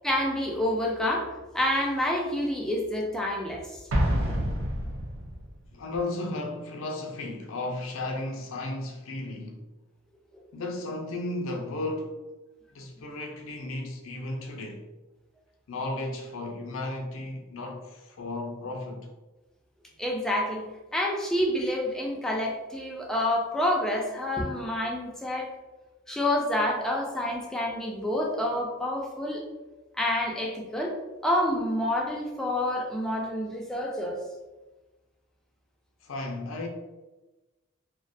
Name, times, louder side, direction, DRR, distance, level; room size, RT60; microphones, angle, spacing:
voice 1, 0.0-3.8 20.0-20.6 20.9-25.5 26.1-29.4 29.9-30.9 31.2-34.2, left 1 dB, 5° left, 0.3 m, -28 dB
Explosion, 3.9-5.6, equal, 85° right, 0.5 m, -27 dB
voice 2, 5.7-9.6 10.5-12.2 12.7-14.9 15.7-19.1 36.0-36.7, left 2 dB, 70° left, 0.5 m, -34 dB
2.3 x 2.1 x 2.6 m
head